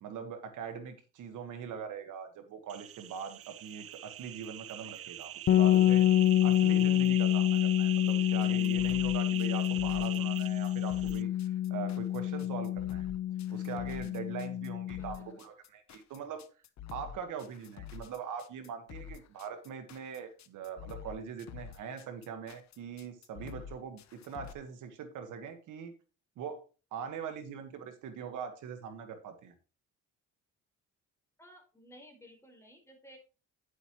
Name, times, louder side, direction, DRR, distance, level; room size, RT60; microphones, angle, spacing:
voice 1, 0.0-6.0 6.4-13.1 13.5-16.5 16.9-25.9 26.4-26.6 26.9-29.5, right 7 dB, 80° right, 7 dB, 1.6 m, -42 dB
sound 1, 2.7-11.2, right 12 dB, 50° right, 0.5 m, -42 dB
sound 2, 5.5-15.2, left 12 dB, 45° left, 0.6 m, -27 dB
sound 3, 8.4-24.5, left 9 dB, 65° left, 0.9 m, -48 dB
voice 2, 15.0-15.4 31.4-33.2, equal, 10° left, 2 dB, 4.5 m, -56 dB
10.0 x 8.2 x 3.1 m, 0.33 s
cardioid pair, 90°, 30 cm